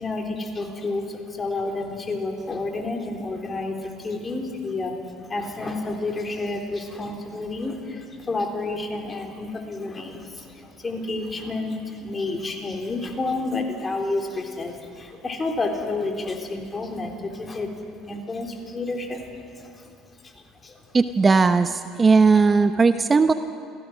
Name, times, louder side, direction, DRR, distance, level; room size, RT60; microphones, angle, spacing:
voice 1, 0.0-17.7 18.0-20.8, left 2 dB, 25° left, 2 dB, 3.5 m, -30 dB
voice 2, 20.9-23.3, right 4 dB, 25° right, 10 dB, 0.7 m, -17 dB
28.0 x 17.0 x 6.2 m, 2.4 s
supercardioid pair, 80°, 0 cm